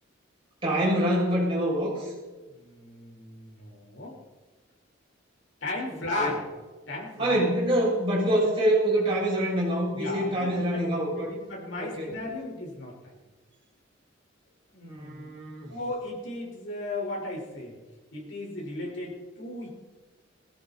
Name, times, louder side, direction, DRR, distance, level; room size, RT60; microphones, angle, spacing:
voice 1, 0.6-2.1 5.9-6.3 7.2-11.3 11.8-12.1 14.8-15.7, right 1 dB, 25° right, -6 dB, 7.1 m, -26 dB
voice 2, 2.5-4.2 5.6-6.4 6.9-7.4 9.9-10.8 11.2-12.9 14.7-15.3 15.7-17.7 18.1-19.7, left 2 dB, 70° left, -2 dB, 4.8 m, -35 dB
18.5 x 17.5 x 4.3 m, 1.3 s
head